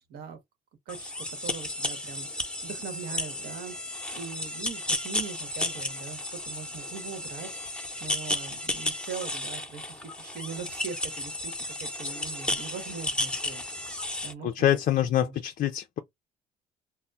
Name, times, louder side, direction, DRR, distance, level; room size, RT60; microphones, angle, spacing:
sound 1, 0.9-14.3, left 1 dB, 5° left, 0.7 m, -33 dB
voice 1, 0.9-7.6 8.0-13.6 14.2-14.5 15.1-15.4, right 6 dB, 75° right, 0.9 m, -41 dB
voice 2, 14.4-16.0, left 11 dB, 55° left, 0.4 m, -25 dB
2.2 x 2.0 x 3.8 m
cardioid pair, 95°, 16 cm